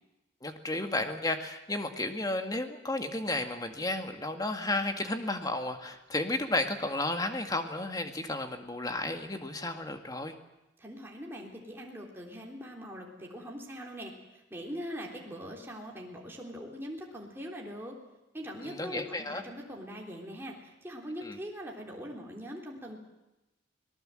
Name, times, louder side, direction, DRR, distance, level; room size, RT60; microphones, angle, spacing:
voice 1, 0.4-10.3 18.6-19.4 21.2-21.4, left 2 dB, 20° left, 6 dB, 1.9 m, -33 dB
voice 2, 10.8-18.0 18.3-23.0, equal, 15° right, -2 dB, 3.6 m, -42 dB
25.0 x 19.0 x 7.7 m, 0.95 s
head